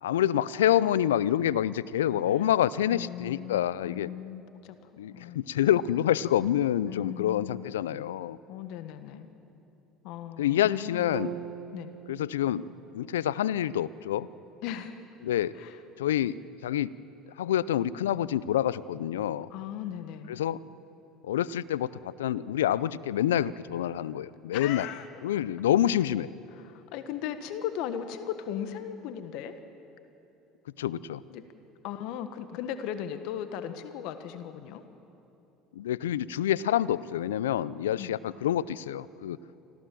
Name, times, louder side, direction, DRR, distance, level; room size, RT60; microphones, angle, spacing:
voice 1, 0.0-4.1 5.0-8.4 10.4-11.3 12.1-12.6 12.9-14.3 15.2-15.6 16.0-16.9 17.4-19.5 20.3-20.6 21.2-24.9 25.2-26.3 30.8-31.2 35.7-39.4, left 11 dB, 85° left, 20 dB, 0.5 m, -27 dB
voice 2, 2.9-4.7 5.1-5.4 6.8-7.7 8.5-9.3 10.0-11.2 11.7-11.9 14.6-15.0 15.5-15.8 19.5-20.4 24.5-25.1 26.5-29.6 31.3-31.4 31.8-34.8 38.0-38.2, left 9 dB, 65° left, 10 dB, 1.4 m, -37 dB
sound 1, 11.1-15.2, right 9 dB, 65° right, 1.6 m, -44 dB
25.0 x 16.0 x 7.7 m, 3.0 s
hypercardioid pair, 75°, 0 cm